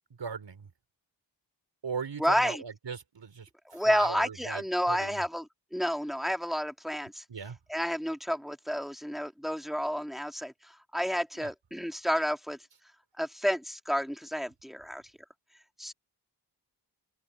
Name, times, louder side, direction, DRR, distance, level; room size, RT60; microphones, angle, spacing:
voice 1, 0.2-0.7 1.8-5.2 7.3-7.6 11.3-11.5, right 6 dB, 75° right, 4.7 m, -39 dB
voice 2, 2.2-2.6 3.7-7.2 7.7-12.6 13.2-15.0 15.8-15.9, equal, ahead, 2.4 m, -30 dB
open air
wide cardioid pair, 90°, 43 cm